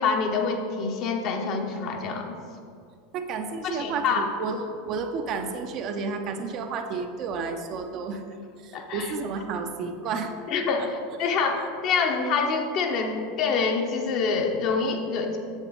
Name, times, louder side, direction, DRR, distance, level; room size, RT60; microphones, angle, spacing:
voice 1, 0.0-2.4 3.6-4.2 8.7-9.1 10.5-15.4, left 5 dB, 45° left, 3 dB, 0.9 m, -26 dB
voice 2, 3.1-8.2 8.6-10.3 10.8-10.9 11.2-11.3, right 4 dB, 45° right, 5 dB, 0.7 m, -31 dB
7.7 x 7.2 x 4.0 m, 2.3 s
figure-of-eight pair, 80°, 0 cm